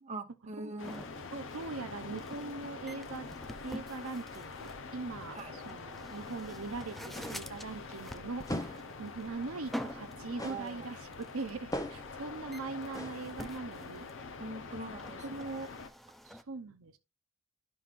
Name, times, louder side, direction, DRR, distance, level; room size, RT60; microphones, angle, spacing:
voice 1, 0.0-1.0 5.3-5.5 10.4-10.9 14.4-15.4, right 2 dB, 35° right, 0.9 m, -43 dB
sound 1, 0.8-15.9, left 4 dB, 65° left, 0.9 m, -45 dB
sound 2, 0.8-16.4, equal, ahead, 0.4 m, -48 dB
voice 2, 1.3-3.3 3.6-14.1 15.2-15.7 16.2-17.0, right 3 dB, 75° right, 0.8 m, -41 dB
sound 3, 7.2-7.6 8.5-8.9 10.4-10.7 11.7-12.2 12.9-13.2, left 1 dB, 15° left, 0.8 m, -39 dB
12.0 x 5.5 x 2.5 m
head